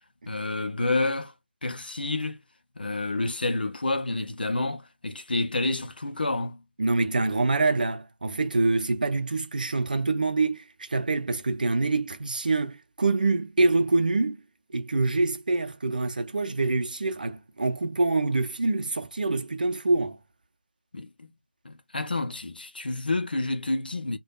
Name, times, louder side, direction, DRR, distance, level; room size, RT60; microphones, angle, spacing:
voice 1, 0.3-1.3 1.6-2.4 2.8-6.6 20.9-21.3 21.6-24.2, left 2 dB, 60° left, 0.7 m, -29 dB
voice 2, 6.8-14.4 14.7-20.2, right 3 dB, 50° right, 0.7 m, -25 dB
3.4 x 2.5 x 2.3 m
figure-of-eight pair, 155°, 6 cm